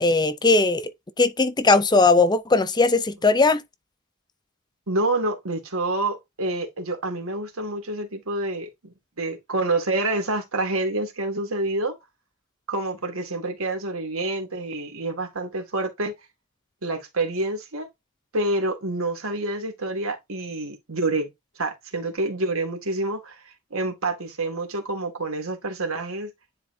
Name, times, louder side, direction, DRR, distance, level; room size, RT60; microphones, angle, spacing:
voice 1, 0.0-0.9 1.2-3.6, left 3 dB, 20° left, 0.5 m, -19 dB
voice 2, 4.9-11.9 12.7-16.2 16.8-17.9 18.3-21.3 21.6-26.3, right 2 dB, 75° right, 2.0 m, -27 dB
10.0 x 4.0 x 2.7 m
head